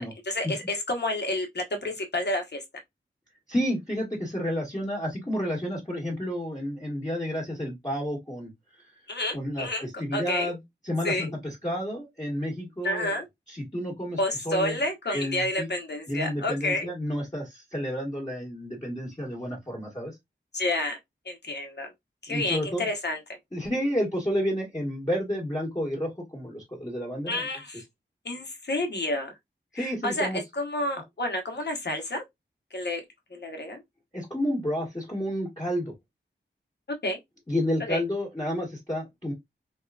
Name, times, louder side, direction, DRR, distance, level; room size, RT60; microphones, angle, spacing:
voice 1, 0.3-2.6 9.1-10.5 11.0-11.3 12.8-13.2 14.2-16.9 20.5-21.0 21.2-21.9 22.2-23.2 27.3-27.8 28.2-29.4 29.7-32.2 32.7-33.0 33.3-33.8 37.0-37.2 37.9-38.0, left 1 dB, 60° left, 0.9 m, -30 dB
voice 2, 3.5-8.5 9.3-10.6 10.8-13.2 13.5-14.2 14.4-14.8 15.1-15.7 16.1-20.1 22.3-22.9 23.5-27.5 29.7-30.4 34.1-35.9 37.5-39.3, equal, 20° left, 1.2 m, -30 dB
2.8 x 2.3 x 2.3 m
wide cardioid pair, 50°, 20 cm